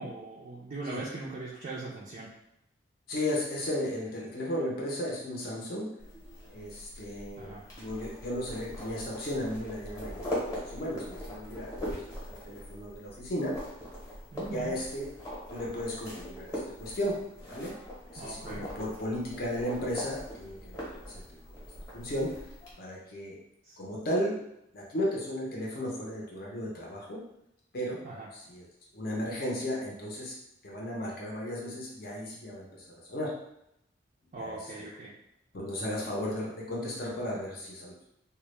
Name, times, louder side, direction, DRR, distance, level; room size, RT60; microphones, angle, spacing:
voice 1, 0.0-2.3 7.4-7.6 14.3-14.8 18.2-18.6 23.6-23.8 28.0-28.3 34.3-35.1, right 2 dB, 40° right, -6 dB, 0.4 m, -40 dB
voice 2, 3.1-5.9 6.5-7.5 7.8-10.4 10.7-12.0 12.2-13.5 14.5-15.1 15.5-17.1 17.4-17.7 18.1-21.0 21.9-22.3 22.8-23.4 23.8-24.3 24.7-27.2 27.7-28.0 28.3-28.6 28.9-30.3 30.6-33.3 34.4-34.6 35.5-37.9, left 1 dB, 50° left, -4 dB, 0.5 m, -35 dB
sound 1, 6.0-22.7, equal, 20° left, 0.8 m, -41 dB
2.1 x 2.0 x 3.0 m, 0.81 s
head